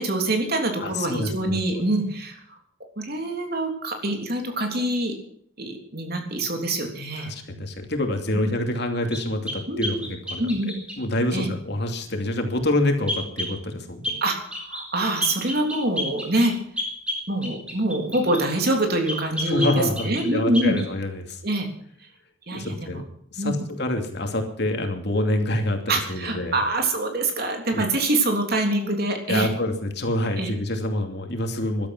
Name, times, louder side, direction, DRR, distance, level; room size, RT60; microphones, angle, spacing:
voice 1, 0.0-2.4 3.0-5.1 5.6-7.6 8.3-8.5 9.7-10.1 10.4-10.7 11.3-11.5 14.2-16.5 17.3-20.8 21.4-21.7 22.5-23.0 23.4-23.6 25.9-29.5 30.4-30.5, right 2 dB, 50° right, 3 dB, 3.4 m, -25 dB
voice 2, 0.8-1.6 7.2-14.2 19.5-21.4 22.5-23.0 23.3-25.8 26.1-26.6 27.7-27.8 29.3-31.9, left 1 dB, 55° left, 4 dB, 2.7 m, -26 dB
sound 1, 9.1-11.0 13.1-13.6 14.0-14.2 14.5-14.9 15.2-18.5 19.1-20.3 20.5-20.9, left 1 dB, 5° right, 3.8 m, -31 dB
15.5 x 12.5 x 6.1 m, 0.65 s
head